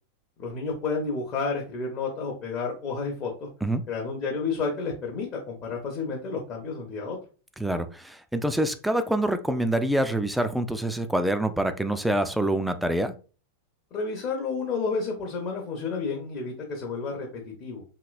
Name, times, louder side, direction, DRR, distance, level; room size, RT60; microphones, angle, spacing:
voice 1, 0.4-3.5 3.9-7.2 13.9-17.8, left 4 dB, 35° left, -1 dB, 0.7 m, -31 dB
voice 2, 7.6-13.1, right 1 dB, 5° right, 10 dB, 0.3 m, -26 dB
2.9 x 2.9 x 2.4 m, 0.37 s
figure-of-eight pair, 90°, 0 cm